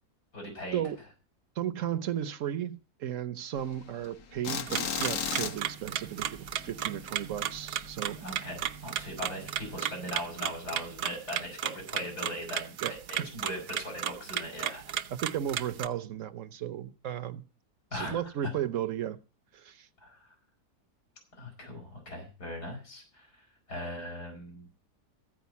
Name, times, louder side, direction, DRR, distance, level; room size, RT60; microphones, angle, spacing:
voice 1, 0.3-0.8 8.2-14.9 17.9-18.5 20.0-20.3 21.3-23.3 23.7-24.7, left 1 dB, 80° left, 5.2 m, -39 dB
voice 2, 1.6-8.2 12.8-12.9 13.2-13.3 15.1-17.4 17.9-19.2 19.5-19.9, right 10 dB, 60° right, 1.0 m, -34 dB
sound 1, 3.6-8.3 8.6-8.8 9.1-9.2 9.6-9.8, left 7 dB, 55° left, 1.2 m, -35 dB
sound 2, 4.7-15.9, right 10 dB, 80° right, 1.3 m, -35 dB
14.5 x 5.0 x 8.2 m
omnidirectional pair, 1.7 m